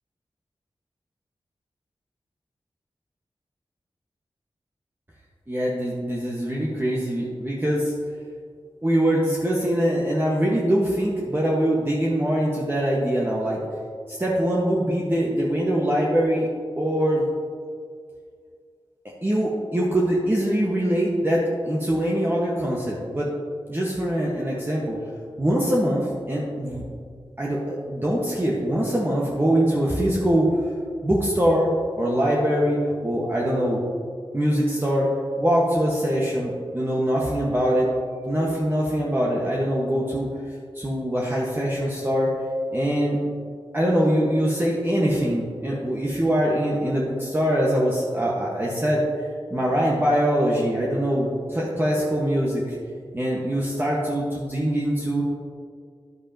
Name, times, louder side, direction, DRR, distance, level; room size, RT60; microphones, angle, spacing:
voice 1, 5.5-7.9 8.8-13.6 14.1-16.5 16.8-17.2 19.2-23.3 23.7-25.0 25.4-26.8 27.4-30.5 31.0-31.7 32.0-33.8 34.3-35.1 35.4-37.9 38.3-40.3 40.7-42.3 42.7-43.2 43.7-49.0 49.5-52.8 53.1-55.2, equal, 25° right, -5 dB, 1.4 m, -23 dB
10.5 x 8.5 x 2.9 m, 2.1 s
cardioid pair, 50°, 10 cm